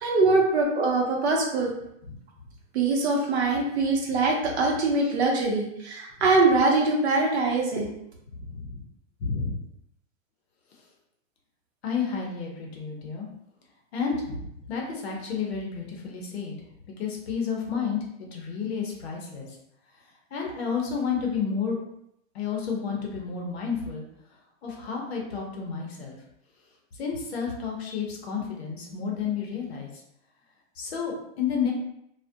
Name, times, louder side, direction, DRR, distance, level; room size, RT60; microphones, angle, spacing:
voice 1, 0.0-1.7 2.7-7.9, right 3 dB, 55° right, 0 dB, 0.7 m, -23 dB
voice 2, 8.3-8.8 9.2-9.6 11.8-13.3 13.9-16.5 17.0-19.5 20.3-21.8 22.3-24.0 24.6-26.2 27.0-29.9 30.8-31.7, left 6 dB, 55° left, 0 dB, 0.7 m, -31 dB
2.3 x 2.1 x 2.6 m, 0.77 s
supercardioid pair, 175°, 39 cm